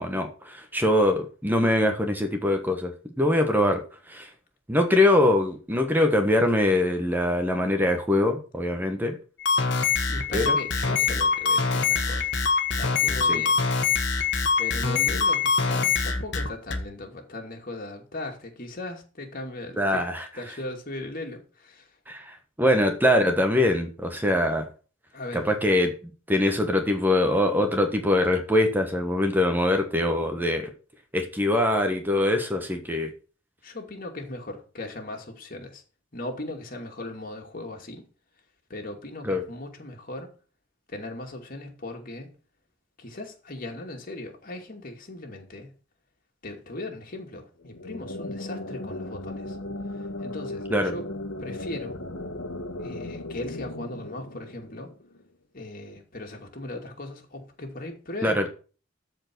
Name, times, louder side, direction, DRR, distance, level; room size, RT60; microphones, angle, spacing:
voice 1, 0.0-2.9 3.2-4.3 4.7-9.2 10.3-10.6 13.3-13.4 19.8-20.3 22.1-24.7 25.3-25.9 26.3-30.7 31.1-33.1 39.2-39.4 50.7-50.9 58.2-58.5, left 1 dB, 10° right, 1.3 m, -23 dB
sound 1, 9.4-16.8, left 5 dB, 65° left, 1.6 m, -24 dB
voice 2, 10.1-12.3 12.8-13.7 14.6-20.0 20.3-22.0 25.1-25.5 33.6-35.8 36.1-38.0 38.7-40.3 40.9-42.3 43.0-45.7 46.4-49.6 49.9-51.1 51.4-52.0 52.8-54.9 55.5-58.5, left 2 dB, 45° left, 2.5 m, -38 dB
sound 2, 47.6-55.2, left 2 dB, 85° left, 1.5 m, -36 dB
13.5 x 4.8 x 6.1 m
head